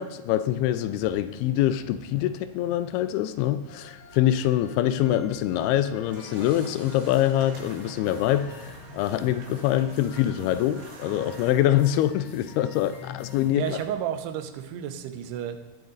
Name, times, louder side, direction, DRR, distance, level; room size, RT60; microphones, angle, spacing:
voice 1, 0.0-13.6, left 12 dB, 85° left, 12 dB, 2.4 m, -24 dB
sound 1, 0.7-13.8, left 3 dB, 40° left, 3.4 m, -46 dB
sound 2, 6.1-11.5, right 3 dB, 70° right, 3.2 m, -48 dB
voice 2, 13.5-15.6, right 10 dB, 90° right, 9 dB, 2.8 m, -32 dB
19.0 x 6.6 x 3.9 m, 1.1 s
omnidirectional pair, 4.6 m